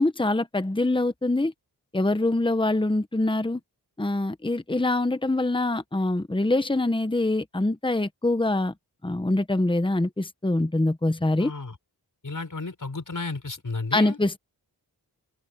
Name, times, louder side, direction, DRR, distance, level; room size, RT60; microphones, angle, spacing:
voice 1, 0.0-1.5 1.9-3.6 4.0-8.7 9.0-11.5 13.9-14.4, left 2 dB, 10° left, 1.2 m, -24 dB
voice 2, 11.4-11.8 12.2-14.2, left 3 dB, 50° left, 5.7 m, -33 dB
cardioid pair, 55°, 41 cm